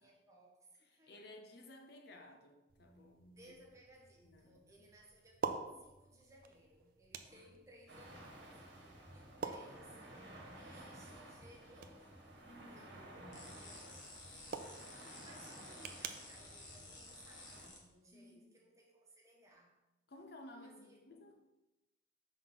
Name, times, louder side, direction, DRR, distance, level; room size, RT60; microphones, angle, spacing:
voice 1, 0.0-1.2 3.3-19.8 20.5-21.0, right 1 dB, 15° right, 1.1 m, -63 dB
voice 2, 0.8-3.6 4.2-4.9 7.3-7.5 12.4-13.7 18.1-18.5 20.1-21.4, left 1 dB, 60° left, 0.6 m, -57 dB
sound 1, 2.7-17.9, right 5 dB, 50° right, 0.4 m, -50 dB
sound 2, 7.9-17.7, right 1 dB, 70° right, 1.5 m, -55 dB
sound 3, 13.3-17.8, left 3 dB, 85° left, 1.4 m, -54 dB
5.0 x 3.9 x 5.6 m
head